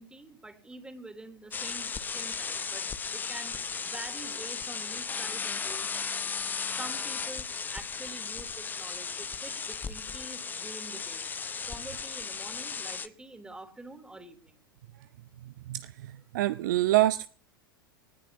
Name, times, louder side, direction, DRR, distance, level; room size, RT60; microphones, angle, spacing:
voice 1, 0.0-2.9 3.1-6.2 6.6-11.2 11.6-14.6, right 2 dB, 5° right, 7 dB, 3.2 m, -46 dB
sound 1, 1.5-13.1, left 5 dB, 15° left, 0.8 m, -35 dB
voice 2, 15.7-17.3, right 15 dB, 55° right, 14 dB, 0.7 m, -26 dB
22.0 x 19.0 x 2.9 m, 0.42 s
figure-of-eight pair, 85°, 12 cm